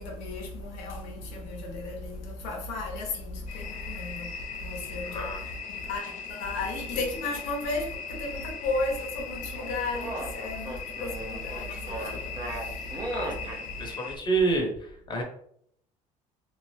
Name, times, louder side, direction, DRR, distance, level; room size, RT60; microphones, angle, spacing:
voice 1, 0.0-4.2 4.6-5.2 5.9-6.0 6.3-7.9 8.2-10.1 10.4-10.7 11.0-11.1 11.5-11.6, left 2 dB, 90° left, 0.8 m, -33 dB
sound 1, 3.5-14.2, left 6 dB, 60° left, 0.8 m, -39 dB
voice 2, 5.0-5.4 13.1-15.2, right 3 dB, 30° left, 0.9 m, -29 dB
sound 2, 9.5-13.6, right 1 dB, 30° right, 0.7 m, -36 dB
2.7 x 2.5 x 3.2 m
supercardioid pair, 90°, 15 cm